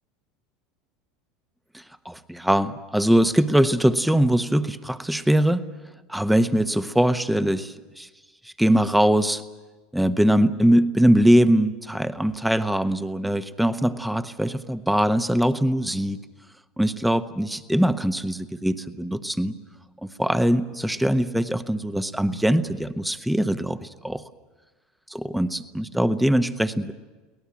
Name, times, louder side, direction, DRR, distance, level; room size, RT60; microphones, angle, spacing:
voice 1, 1.7-5.6 6.1-8.1 8.4-9.4 9.9-16.2 16.8-19.5 20.0-24.2 25.1-26.9, right 1 dB, 5° right, 11 dB, 1.1 m, -22 dB
23.5 x 18.5 x 8.8 m, 1.3 s
hypercardioid pair, 80°, 0 cm